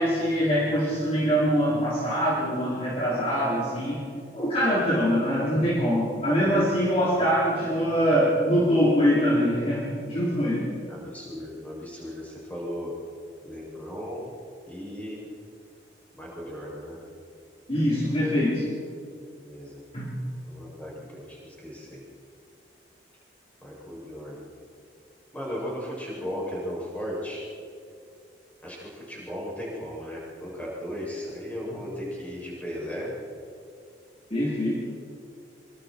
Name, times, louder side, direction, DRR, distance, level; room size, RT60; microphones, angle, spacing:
voice 1, 0.0-10.7 17.7-18.7 19.9-20.2 34.3-34.7, equal, 35° left, -7 dB, 4.1 m, -24 dB
voice 2, 10.9-12.9 13.4-14.3 14.7-15.2 16.2-17.0 19.3-19.8 20.5-22.0 23.6-24.3 25.3-27.4 28.6-33.1, equal, 10° left, -5 dB, 7.4 m, -36 dB
26.0 x 25.0 x 4.7 m, 2.4 s
head